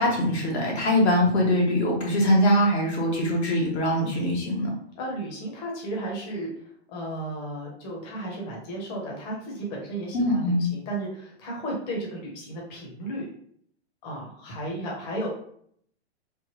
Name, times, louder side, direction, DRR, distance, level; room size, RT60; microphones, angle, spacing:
voice 1, 0.0-4.7 10.1-10.6, left 1 dB, 75° left, -2 dB, 1.3 m, -22 dB
voice 2, 5.0-6.5 6.9-13.3 14.0-15.3, right 1 dB, 40° left, -2 dB, 1.0 m, -34 dB
3.4 x 2.1 x 3.0 m, 0.64 s
hypercardioid pair, 135°, 33 cm